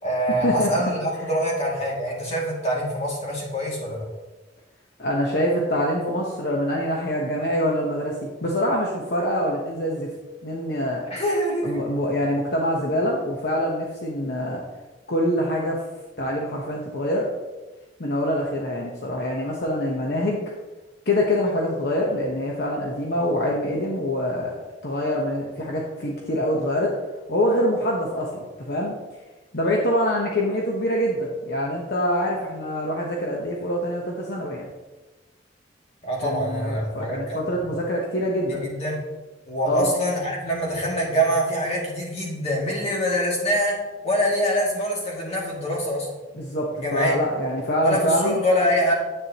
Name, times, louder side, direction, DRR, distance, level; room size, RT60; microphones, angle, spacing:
voice 1, 0.0-4.1 11.1-11.9 36.0-37.6 38.5-39.0 39.5-43.7 44.0-46.1 46.7-47.2 47.8-48.9, equal, 35° left, -3 dB, 2.5 m, -24 dB
voice 2, 5.0-10.1 10.4-11.0 11.6-14.6 15.1-15.8 16.2-17.3 18.0-20.4 21.1-24.6 24.8-26.9 27.3-28.9 29.5-34.7 36.2-38.6 39.7-39.9 46.3-48.4, equal, 60° left, -2 dB, 1.1 m, -25 dB
9.9 x 8.4 x 3.0 m, 1.2 s
head